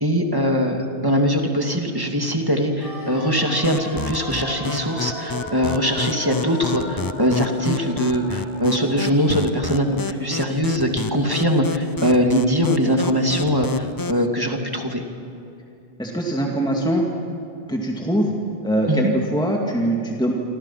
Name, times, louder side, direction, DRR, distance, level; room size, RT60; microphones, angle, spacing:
voice 1, 0.0-15.0 18.9-19.0, equal, 20° right, 2 dB, 2.5 m, -21 dB
sound 1, 2.8-12.7 13.0-13.1, left 1 dB, 65° left, 6.5 m, -37 dB
sound 2, 3.6-14.3, left 4 dB, 30° left, 0.5 m, -30 dB
voice 2, 16.0-17.0 17.7-18.3 18.6-20.3, right 1 dB, 5° left, 0 dB, 2.4 m, -22 dB
27.5 x 25.5 x 5.8 m, 2.7 s
omnidirectional pair, 1.0 m